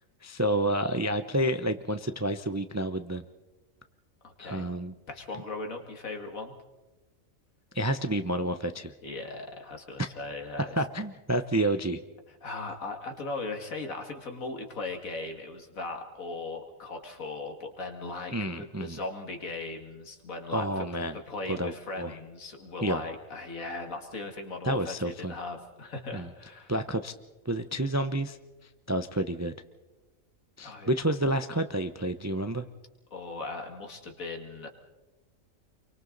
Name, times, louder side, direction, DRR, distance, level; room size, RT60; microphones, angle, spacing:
voice 1, 0.2-3.2 4.4-4.9 7.7-8.9 10.0-10.1 10.8-12.0 18.3-19.0 20.5-21.2 21.5-22.2 22.8-23.0 24.6-25.3 26.1-26.3 26.7-27.1 27.5-28.4 28.9-29.5 30.6-32.7, right 1 dB, 25° right, 9 dB, 0.3 m, -29 dB
voice 2, 4.2-4.7 5.1-6.5 9.0-10.8 12.4-20.9 21.1-26.7 30.6-30.9 33.1-34.7, left 3 dB, 90° left, 4 dB, 2.5 m, -38 dB
28.5 x 23.5 x 4.0 m, 1.1 s
omnidirectional pair, 1.4 m